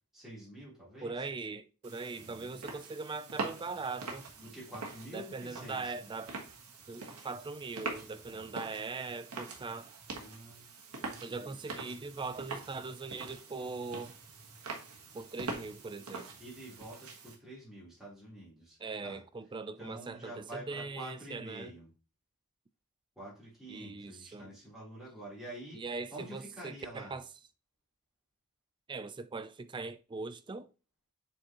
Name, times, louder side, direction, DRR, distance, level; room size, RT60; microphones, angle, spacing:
voice 1, 0.1-1.2 2.2-2.7 4.4-5.9 8.3-8.5 10.1-10.7 11.0-11.6 16.4-19.2 19.8-21.9 23.2-25.8 26.1-27.2, right 1 dB, ahead, 3.6 m, -48 dB
voice 2, 1.0-4.3 5.1-6.4 6.9-9.9 11.2-14.2 15.1-16.3 18.8-21.7 23.7-24.5 25.7-27.3 28.9-30.7, right 4 dB, 20° right, 0.4 m, -41 dB
sound 1, 1.8-17.4, right 3 dB, 75° right, 1.4 m, -44 dB
7.1 x 4.6 x 3.0 m
head